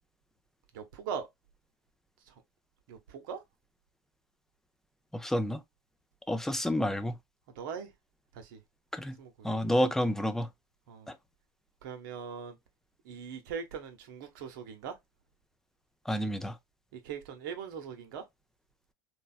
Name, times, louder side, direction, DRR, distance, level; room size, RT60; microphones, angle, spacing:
voice 1, 0.7-1.3 2.9-3.4 7.6-7.9 8.3-8.6 9.2-9.5 10.9-11.1 11.8-12.6 13.0-15.0 16.9-18.2, right 7 dB, 70° right, 0.8 m, -40 dB
voice 2, 5.1-5.6 6.3-7.1 8.9-9.2 9.4-10.5 16.1-16.5, equal, 5° left, 0.5 m, -29 dB
3.2 x 2.1 x 2.4 m
hypercardioid pair, 85°, 12 cm